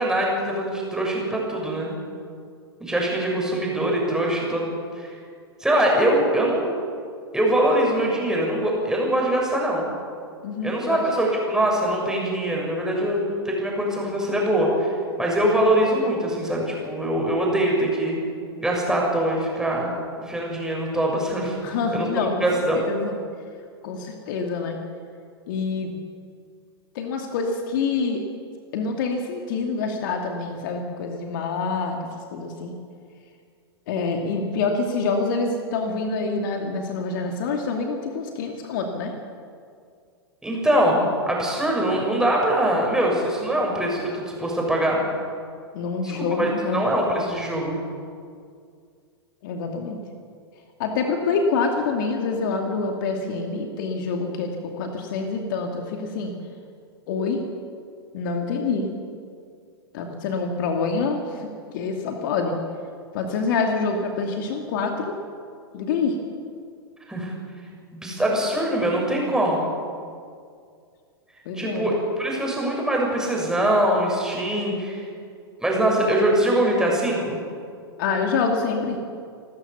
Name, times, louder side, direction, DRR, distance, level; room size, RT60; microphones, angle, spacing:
voice 1, 0.0-1.9 2.8-4.7 5.0-5.1 5.6-6.7 7.3-9.9 10.6-18.2 18.6-19.9 20.3-21.6 21.9-22.1 22.4-22.8 40.4-45.0 46.0-47.8 67.1-67.3 67.9-69.6 71.6-75.0 75.6-77.4, right 1 dB, 5° right, -2 dB, 6.6 m, -23 dB
voice 2, 10.4-11.0 21.6-22.5 22.7-23.1 23.8-24.8 25.5-25.9 26.9-28.2 28.7-32.0 32.3-32.7 33.9-39.1 45.7-46.8 49.4-50.0 50.8-56.3 57.1-57.4 58.1-58.9 59.9-61.5 61.7-62.6 63.1-65.1 65.7-66.2 71.5-71.9 78.0-79.0, left 4 dB, 50° left, 3 dB, 2.5 m, -26 dB
28.5 x 13.5 x 7.0 m, 2.2 s
figure-of-eight pair, 100°, 13 cm